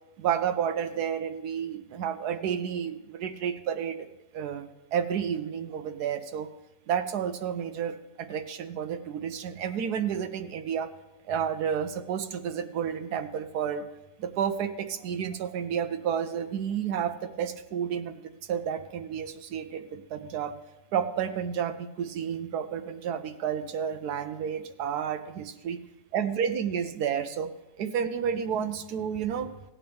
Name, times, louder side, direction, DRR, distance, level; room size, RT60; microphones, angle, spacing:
voice 1, 0.2-4.1 4.3-6.5 6.9-10.9 11.3-13.9 14.2-20.5 20.9-25.8 26.1-27.5 27.8-29.5, right 8 dB, 70° right, 10 dB, 1.1 m, -31 dB
17.0 x 8.5 x 3.5 m, 1.0 s
omnidirectional pair, 1.9 m